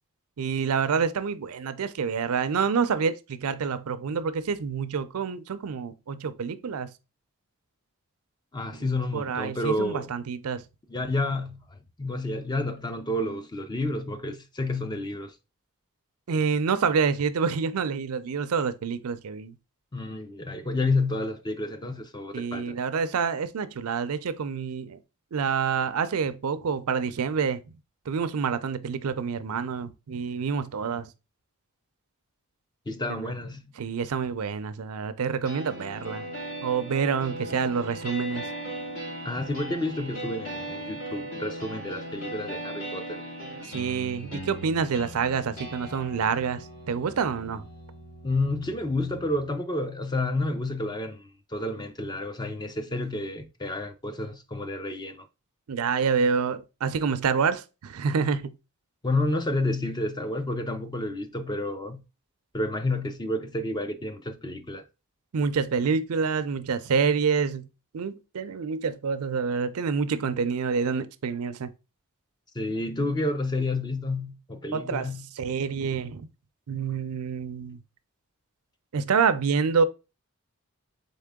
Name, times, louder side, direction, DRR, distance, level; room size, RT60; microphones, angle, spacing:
voice 1, 0.4-6.9 9.1-10.6 16.3-19.6 22.3-25.0 25.3-27.6 28.1-31.1 33.1-33.3 33.8-36.3 36.6-38.4 43.7-47.6 55.7-58.5 65.3-67.7 67.9-71.7 74.7-75.1 75.4-76.3 76.7-77.8 78.9-79.8, right 6 dB, 80° right, 0.5 m, -27 dB
voice 2, 8.5-10.1 10.9-15.4 19.9-22.8 32.9-33.6 39.2-43.2 48.2-55.3 59.0-62.0 62.5-64.8 72.5-75.3, left 2 dB, 20° left, 0.4 m, -30 dB
sound 1, 35.4-49.4, right 1 dB, 60° left, 2.3 m, -38 dB
4.1 x 3.7 x 3.5 m
head